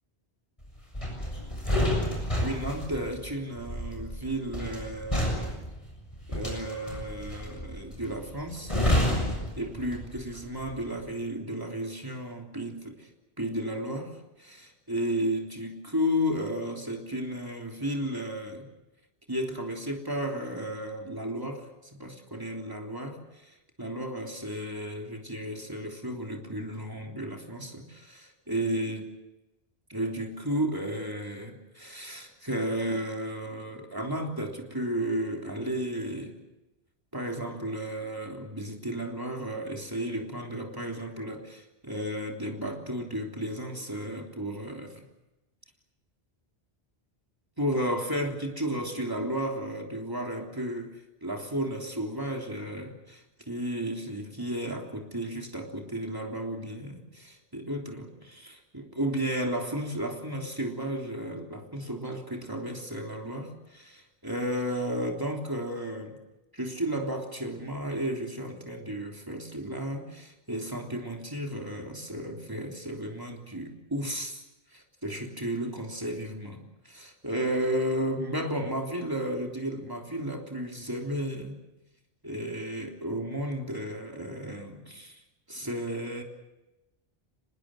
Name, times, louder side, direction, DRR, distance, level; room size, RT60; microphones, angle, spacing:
sound 1, 0.9-10.3 10.6-10.9, left 1 dB, 30° left, 7.1 m, -30 dB
voice 1, 2.4-5.6 6.3-8.8 9.6-13.1 13.4-18.7 19.3-29.0 29.9-36.4 37.1-45.0 47.6-66.2 66.5-74.4 74.7-81.6 82.2-85.2 85.5-86.2, equal, 20° right, 2 dB, 3.4 m, -33 dB
25.0 x 21.5 x 7.9 m, 0.97 s
omnidirectional pair, 1.0 m